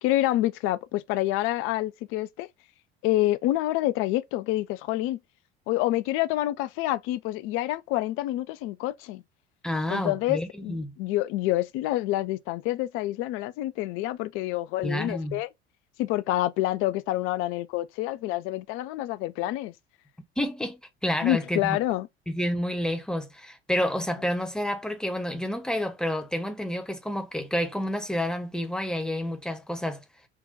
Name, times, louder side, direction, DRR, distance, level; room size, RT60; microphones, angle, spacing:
voice 1, 0.0-2.5 3.0-5.2 5.7-9.2 9.9-15.5 16.0-19.7 21.2-22.1, left 15 dB, 40° left, 0.4 m, -27 dB
voice 2, 9.6-10.9 14.8-15.4 20.4-21.8 22.3-30.0, left 1 dB, ahead, 0.8 m, -29 dB
3.8 x 2.2 x 3.8 m
figure-of-eight pair, 65°, 33 cm